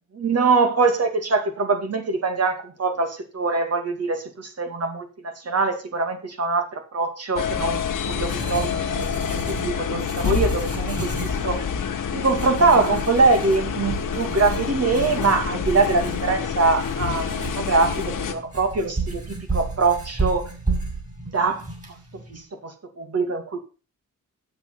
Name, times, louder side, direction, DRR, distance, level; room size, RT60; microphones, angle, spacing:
voice 1, 0.2-7.8 8.1-11.1 11.4-11.7 12.1-20.5 21.3-21.6 22.1-23.6, right 4 dB, 50° right, 2.3 m, -23 dB
sound 1, 7.4-18.3, left 7 dB, 85° left, 1.5 m, -27 dB
Writing, 7.6-22.4, right 3 dB, 25° right, 4.8 m, -33 dB
8.0 x 7.9 x 5.9 m
wide cardioid pair, 130°, 31 cm